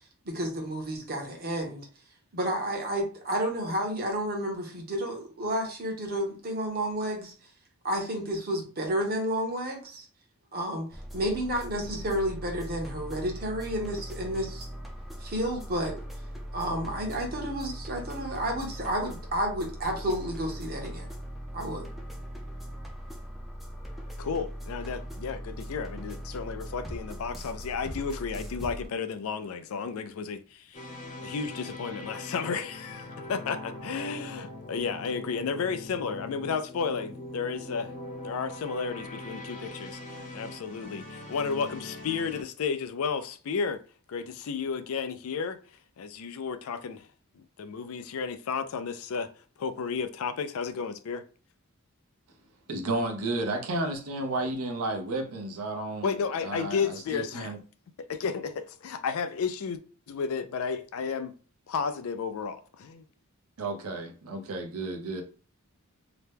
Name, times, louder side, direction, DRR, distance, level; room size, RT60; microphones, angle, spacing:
voice 1, 0.2-1.9 2.3-7.3 7.8-10.1 10.5-10.9 11.1-14.7 15.2-15.9 16.5-21.1 21.5-21.9, equal, 45° right, 0.9 m, -31 dB
sound 1, 10.9-28.9, equal, ahead, 0.4 m, -40 dB
voice 2, 24.2-30.8 31.2-37.9 38.2-43.8 44.1-45.6 46.0-47.1 47.3-49.3 49.6-51.2 56.0-57.5 58.0-59.8 60.1-61.3 61.7-63.0, left 5 dB, 70° left, 0.4 m, -33 dB
sound 2, 30.7-42.4, left 2 dB, 35° left, 0.8 m, -42 dB
voice 3, 52.7-56.1 56.4-57.6 63.6-65.2, right 2 dB, 75° right, 0.7 m, -32 dB
2.9 x 2.1 x 3.3 m
head